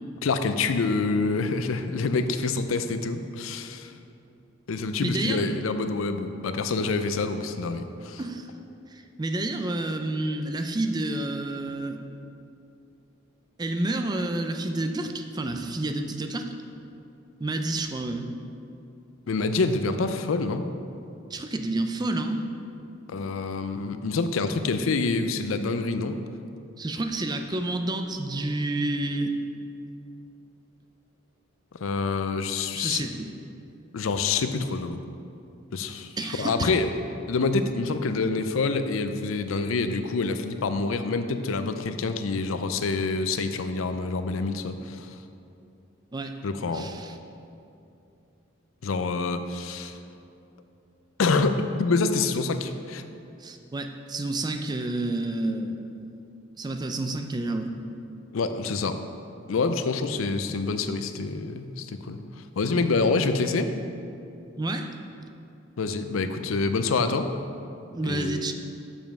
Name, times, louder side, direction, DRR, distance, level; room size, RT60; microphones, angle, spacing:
voice 1, 0.2-3.9 4.7-8.2 19.3-20.7 23.1-26.2 31.8-33.0 33.9-35.0 35.7-36.9 37.3-45.2 46.4-46.9 48.8-50.0 51.2-53.0 58.3-59.0 59.5-63.7 65.8-67.3 68.0-68.5, left 3 dB, 80° left, 9 dB, 0.5 m, -27 dB
voice 2, 5.0-5.5 8.2-8.5 8.9-12.0 13.6-16.5 17.4-18.3 21.3-22.5 26.8-29.3 32.7-33.3 36.2-36.7 46.1-46.4 46.7-47.2 53.4-55.9 56.5-57.8 64.6-64.9 67.9-68.5, right 2 dB, 20° right, 6 dB, 0.4 m, -29 dB
7.0 x 5.4 x 6.0 m, 2.6 s
head